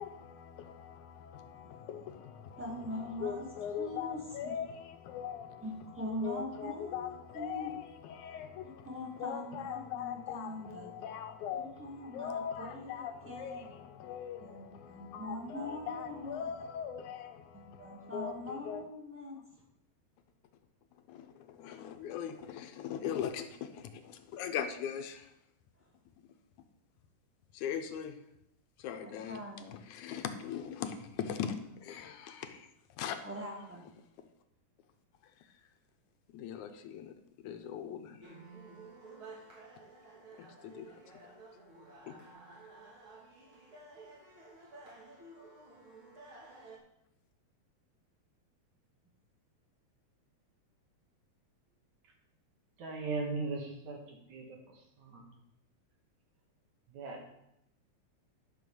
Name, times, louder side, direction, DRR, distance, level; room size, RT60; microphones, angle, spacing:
voice 1, 0.0-18.8 21.1-25.3 27.5-28.2 28.8-29.4 29.7-32.7 33.0-33.2 36.3-38.3 40.4-40.9 42.1-42.2 42.5-42.6, left 8 dB, 80° left, 2.3 m, -41 dB
voice 2, 2.6-3.4 3.8-4.5 5.6-7.7 8.8-10.9 11.5-13.7 14.4-16.5 17.5-19.4 29.0-29.8 33.2-33.9, left 1 dB, 5° right, 2.0 m, -42 dB
sound 1, 38.2-46.8, right 3 dB, 45° right, 3.1 m, -53 dB
voice 3, 52.8-55.4 56.9-57.2, right 3 dB, 70° right, 3.1 m, -39 dB
11.5 x 5.6 x 6.9 m
omnidirectional pair, 3.5 m